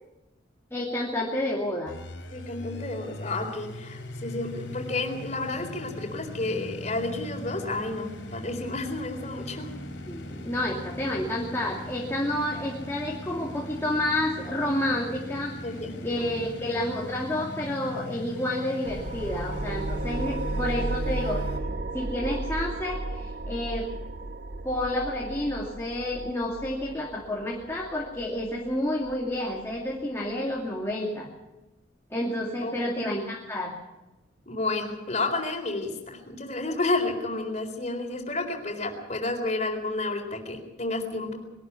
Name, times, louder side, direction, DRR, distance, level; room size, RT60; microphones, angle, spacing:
voice 1, 0.7-2.0 10.1-15.5 16.0-23.9 24.6-31.3 32.1-33.7, left 1 dB, 15° left, -2 dB, 2.5 m, -30 dB
sound 1, 1.9-21.6, left 1 dB, 90° left, 3.9 m, -39 dB
voice 2, 2.3-9.7 15.6-16.4 32.6-33.1 34.5-41.4, left 2 dB, 40° left, 3 dB, 4.1 m, -31 dB
sound 2, 18.8-29.9, right 2 dB, 60° right, 1.1 m, -34 dB
22.0 x 12.0 x 9.7 m, 1.0 s
head